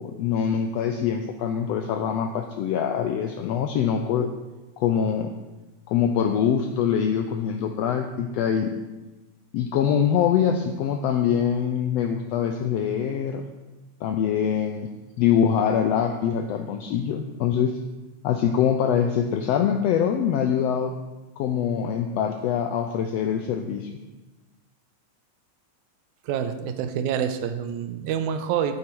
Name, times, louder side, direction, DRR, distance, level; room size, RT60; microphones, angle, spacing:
voice 1, 0.0-4.3 4.8-5.3 5.9-8.7 9.5-13.5 14.0-14.9 15.2-17.8 18.2-20.9 21.4-23.9, left 8 dB, 85° left, 6 dB, 1.4 m, -24 dB
voice 2, 26.3-28.8, right 8 dB, 85° right, 9 dB, 2.1 m, -27 dB
8.7 x 8.5 x 4.5 m, 1.1 s
omnidirectional pair, 3.5 m